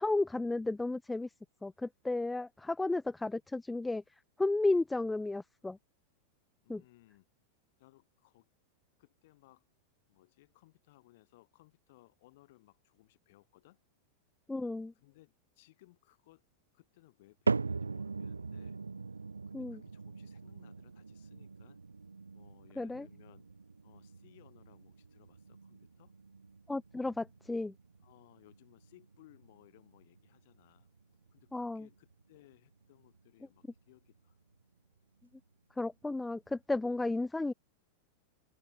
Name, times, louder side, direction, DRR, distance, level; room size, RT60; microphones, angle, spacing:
voice 1, 0.0-1.3 1.6-4.0 4.4-5.8 6.7-6.8 14.5-14.9 19.5-19.8 22.8-23.1 26.7-27.7 31.5-31.9 35.8-37.5, left 2 dB, 5° left, 0.3 m, -33 dB
voice 2, 6.6-7.3 7.8-8.5 9.0-9.7 10.1-13.8 14.9-16.4 16.7-18.8 19.5-21.8 22.3-23.5 23.8-26.1 28.0-30.9 31.3-34.4, left 19 dB, 50° left, 4.0 m, -63 dB
sound 1, 17.5-33.8 34.1-34.6 35.2-35.3 36.1-36.2, right 4 dB, 75° right, 0.5 m, -41 dB
open air
figure-of-eight pair, 90°, 0 cm